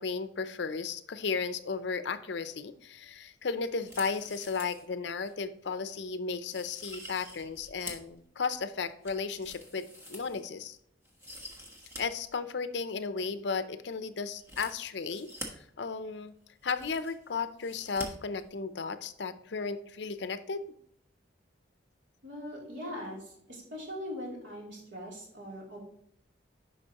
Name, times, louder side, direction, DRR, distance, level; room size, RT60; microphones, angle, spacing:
voice 1, 0.0-10.8 12.0-15.3 15.8-16.3 16.6-20.7, left 5 dB, 65° left, 11 dB, 0.5 m, -34 dB
sound 1, 3.8-4.9 5.2-5.3 5.9-6.0 6.5-8.1 8.5-10.7 11.0-12.0 12.3-12.4 14.4-15.5 16.3-16.4 16.6-17.3 17.6-18.1 18.4-18.5, left 1 dB, 15° right, 1.2 m, -46 dB
voice 2, 22.2-25.8, equal, 80° right, -3 dB, 3.0 m, -41 dB
10.5 x 5.3 x 2.9 m, 0.70 s
head